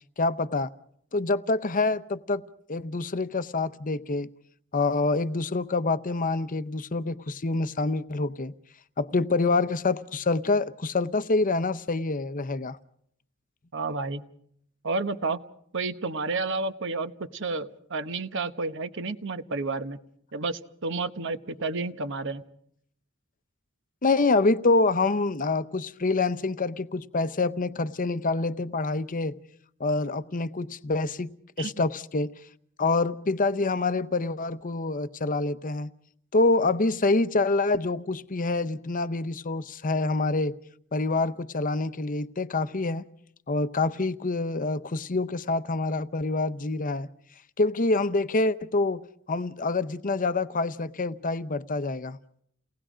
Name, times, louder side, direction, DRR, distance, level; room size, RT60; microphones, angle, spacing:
voice 1, 0.2-0.7 1.1-2.4 2.7-4.3 4.7-8.5 9.0-12.8 24.0-29.4 29.8-31.3 31.6-32.3 32.8-35.9 36.3-40.5 40.9-43.1 43.5-47.1 47.6-52.2, left 3 dB, 40° left, 0.7 m, -26 dB
voice 2, 13.7-14.2 14.8-15.4 15.7-20.0 20.3-22.4 31.6-31.8, right 3 dB, 60° right, 1.2 m, -31 dB
30.0 x 19.0 x 5.0 m
head